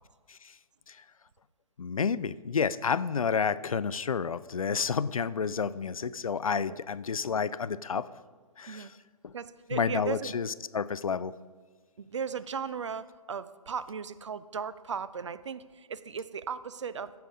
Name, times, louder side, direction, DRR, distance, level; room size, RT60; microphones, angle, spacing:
voice 1, 1.8-8.1 8.6-9.0 9.2-9.3 9.7-11.3, left 6 dB, 65° left, 16 dB, 0.4 m, -30 dB
voice 2, 9.3-10.3 12.0-17.1, right 6 dB, 50° right, 15 dB, 0.5 m, -37 dB
15.0 x 5.8 x 5.0 m, 1.5 s
figure-of-eight pair, 135°, 19 cm